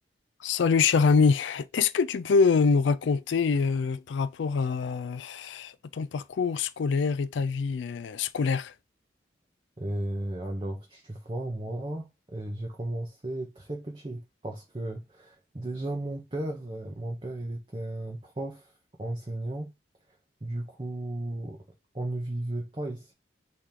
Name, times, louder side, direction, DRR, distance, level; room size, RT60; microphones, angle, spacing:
voice 1, 0.4-8.7, left 5 dB, 85° left, 0.4 m, -25 dB
voice 2, 9.8-18.7 19.0-19.7 20.4-21.6 21.9-23.1, right 1 dB, 30° right, 0.6 m, -35 dB
4.2 x 3.4 x 3.7 m
head